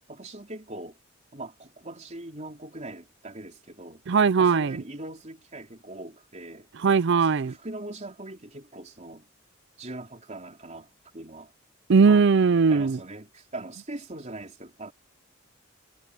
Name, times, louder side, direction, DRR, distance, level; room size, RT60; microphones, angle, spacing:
voice 1, 0.1-1.0 1.3-4.0 4.4-6.7 7.2-9.3 9.8-11.5 12.1-12.3 12.7-14.9, right 2 dB, 35° right, 3.8 m, -41 dB
voice 2, 4.1-4.8 6.8-7.5 11.9-13.0, right 5 dB, 60° right, 0.5 m, -19 dB
head